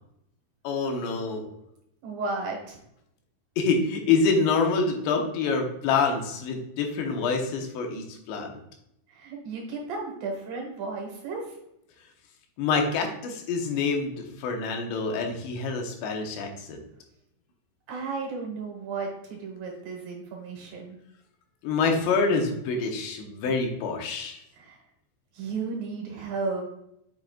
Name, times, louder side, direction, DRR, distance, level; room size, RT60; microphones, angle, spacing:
voice 1, 0.6-1.4 3.6-8.5 12.6-16.8 21.6-24.4, left 4 dB, 85° left, 3 dB, 3.2 m, -26 dB
voice 2, 2.0-2.8 9.1-11.5 17.9-21.0 24.6-24.8 25.3-26.7, right 4 dB, 70° right, 1 dB, 2.5 m, -34 dB
7.5 x 5.9 x 2.3 m, 0.80 s
omnidirectional pair, 4.9 m